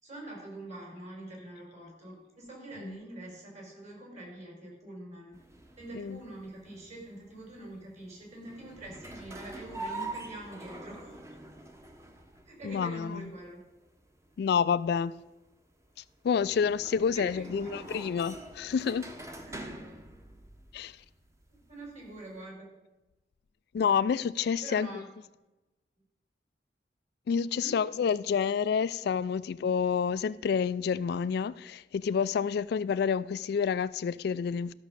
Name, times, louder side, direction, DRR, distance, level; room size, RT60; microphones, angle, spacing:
voice 1, 0.0-5.3 5.8-11.1 12.5-13.7 17.0-17.9 19.4-20.0 21.5-22.7 24.6-25.2 27.6-27.8, right 1 dB, 40° right, 4.9 m, -45 dB
sound 1, 5.3-22.4, right 2 dB, 15° right, 1.0 m, -46 dB
voice 2, 12.6-13.4 14.4-15.2 16.2-19.1 20.7-20.9 23.7-25.0 27.3-34.7, left 6 dB, 60° left, 0.3 m, -29 dB
13.5 x 6.1 x 6.7 m
head